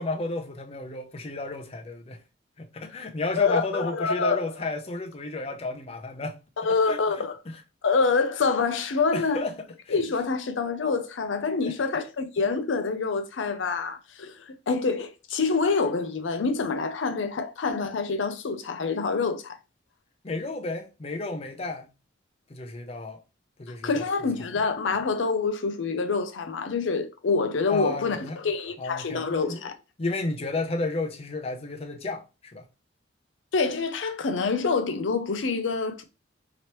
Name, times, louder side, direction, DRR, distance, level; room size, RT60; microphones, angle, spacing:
voice 1, 0.0-2.2 2.6-6.4 6.6-7.0 7.5-7.6 9.1-9.9 11.6-12.0 20.2-21.9 22.5-23.2 23.6-24.1 27.7-28.4 28.8-29.7 30.0-32.7, left 2 dB, 30° left, 0.5 m, -32 dB
voice 2, 3.4-4.5 6.6-7.4 7.8-9.4 9.9-19.6 23.8-29.8 33.5-36.0, left 4 dB, 75° left, 0.5 m, -26 dB
3.0 x 2.9 x 3.0 m
head